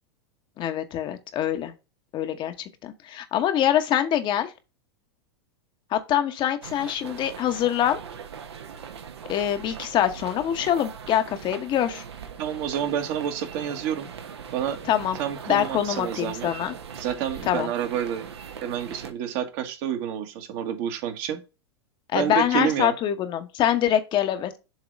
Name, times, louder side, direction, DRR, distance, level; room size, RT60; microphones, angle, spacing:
voice 1, 0.6-1.7 2.1-2.5 2.8-4.5 5.9-8.0 9.3-12.0 14.8-15.2 15.5-16.7 17.5-17.7 22.1-24.6, left 10 dB, 35° left, 0.9 m, -24 dB
sound 1, 6.6-19.1, right 7 dB, 80° right, 1.1 m, -40 dB
voice 2, 12.4-14.1 14.5-14.8 15.2-16.5 17.0-18.3 18.6-21.4 22.1-22.9, right 9 dB, 50° right, 1.4 m, -29 dB
7.3 x 2.9 x 5.1 m
hypercardioid pair, 105°, 14 cm